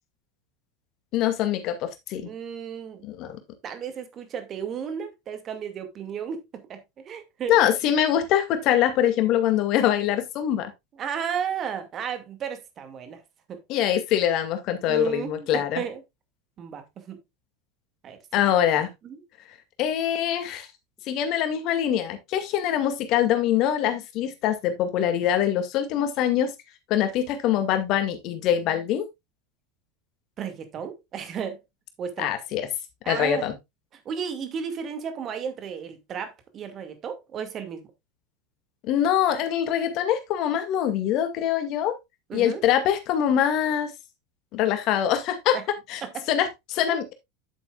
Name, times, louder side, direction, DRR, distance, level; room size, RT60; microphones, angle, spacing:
voice 1, 1.1-2.3 3.0-3.4 7.5-10.7 13.7-15.8 18.3-18.9 19.8-20.7 21.1-26.5 26.9-29.0 32.2-32.7 33.1-33.5 38.8-42.0 42.3-43.9 44.5-45.6 45.9-46.0 46.3-47.1, left 10 dB, 50° left, 2.2 m, -24 dB
voice 2, 2.2-3.0 3.6-6.8 7.0-7.6 11.0-13.2 13.5-13.6 14.9-16.0 16.6-17.2 18.0-18.7 19.0-19.2 30.4-31.6 32.0-32.3 33.0-33.4 34.1-37.9 42.3-42.6 45.5-45.6 46.0-46.3 46.9-47.0, right 7 dB, 35° right, 2.2 m, -34 dB
10.5 x 8.1 x 2.4 m
figure-of-eight pair, 80°, 0 cm